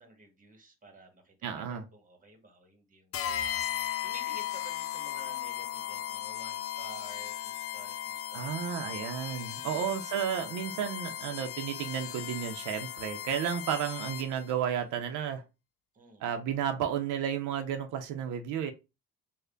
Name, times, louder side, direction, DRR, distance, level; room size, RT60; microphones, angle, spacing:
voice 1, 0.0-8.6 9.4-10.0 15.9-16.4, right 2 dB, 25° right, 1.1 m, -53 dB
voice 2, 1.4-1.8 8.3-15.4 16.2-18.7, right 8 dB, 90° right, 0.5 m, -32 dB
sound 1, 3.1-14.5, left 11 dB, 50° left, 0.4 m, -37 dB
3.3 x 2.1 x 3.7 m
cardioid pair, 90°, 30 cm